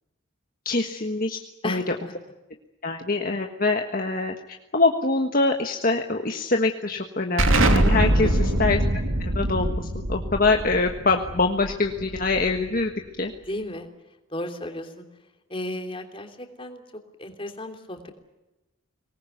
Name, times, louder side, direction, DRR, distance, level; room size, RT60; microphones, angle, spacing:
voice 1, 0.6-1.9 2.8-8.8 9.3-12.9 13.2-13.3, left 3 dB, 45° left, 4 dB, 1.4 m, -24 dB
voice 2, 1.6-1.9 8.2-8.5 13.5-13.9 14.3-15.1 15.5-16.8 17.2-18.1, left 1 dB, 25° left, 5 dB, 3.1 m, -34 dB
Explosion, 7.4-12.8, right 1 dB, 80° right, 2.8 m, -23 dB
24.0 x 19.5 x 9.3 m, 1.0 s
head